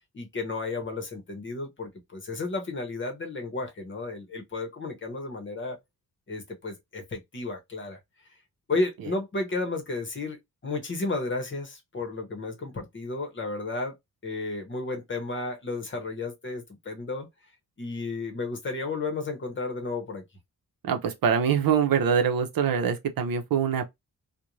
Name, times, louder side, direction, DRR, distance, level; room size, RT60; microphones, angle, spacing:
voice 1, 0.1-5.8 6.3-8.0 8.7-14.0 14.2-17.3 17.8-20.2, left 3 dB, 35° left, 0.8 m, -33 dB
voice 2, 20.8-23.9, right 7 dB, 70° right, 0.7 m, -24 dB
2.5 x 2.1 x 3.0 m
wide cardioid pair, 135°, 36 cm